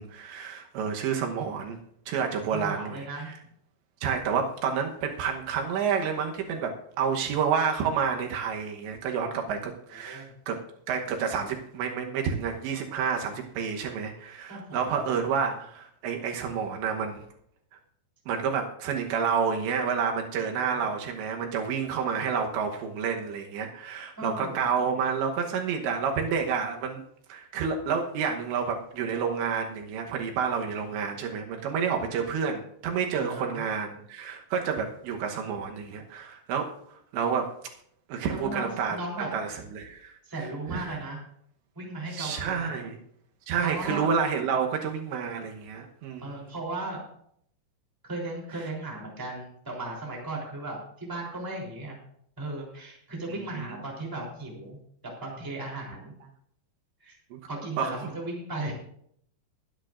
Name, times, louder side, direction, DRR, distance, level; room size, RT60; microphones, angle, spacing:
voice 1, 0.0-1.8 2.1-3.4 4.0-6.7 7.0-10.6 10.9-17.2 18.3-27.0 27.3-37.5 38.1-39.0 39.3-40.1 40.7-41.0 42.1-43.0 43.5-46.3 53.3-53.7 57.3-57.4 57.8-57.9, right 6 dB, 75° right, 2 dB, 3.3 m, -29 dB
voice 2, 2.5-3.3 9.5-9.6 9.9-10.3 14.5-15.0 20.7-20.8 24.2-24.7 30.9-31.0 33.2-33.6 38.3-39.3 40.2-41.2 41.7-42.7 43.6-44.1 46.2-47.0 48.0-52.0 52.4-56.1 57.0-57.2 57.5-58.7, right 2 dB, 5° right, -2 dB, 2.5 m, -36 dB
21.5 x 10.0 x 2.5 m, 0.67 s
omnidirectional pair, 5.3 m